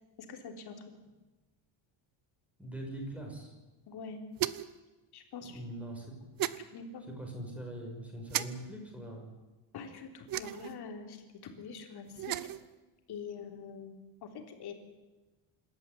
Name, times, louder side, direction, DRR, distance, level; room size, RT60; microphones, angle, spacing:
voice 1, 0.3-0.9 3.9-4.2 5.1-5.6 6.4-7.0 9.7-12.4 13.1-14.7, left 5 dB, 55° left, 4 dB, 3.7 m, -45 dB
voice 2, 2.6-3.5 5.5-6.1 7.2-9.2, right 1 dB, 5° right, 1 dB, 6.1 m, -42 dB
sound 1, 4.4-4.8 6.4-6.6 8.3-8.5 10.3-10.8 12.1-12.6, right 13 dB, 45° right, 0.9 m, -34 dB
27.0 x 13.5 x 9.7 m, 1.2 s
cardioid pair, 170°, 46 cm